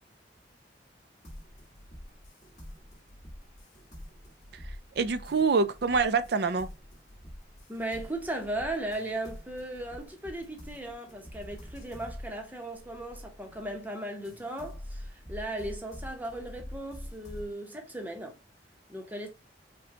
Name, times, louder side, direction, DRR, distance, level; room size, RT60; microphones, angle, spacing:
sound 1, 1.2-13.8 14.2-17.5, equal, 45° left, 1.8 m, -46 dB
voice 1, 4.7-6.7, right 4 dB, 65° right, 0.5 m, -26 dB
voice 2, 7.7-18.4 18.9-19.3, right 1 dB, 10° right, 0.9 m, -37 dB
5.0 x 2.3 x 2.9 m
head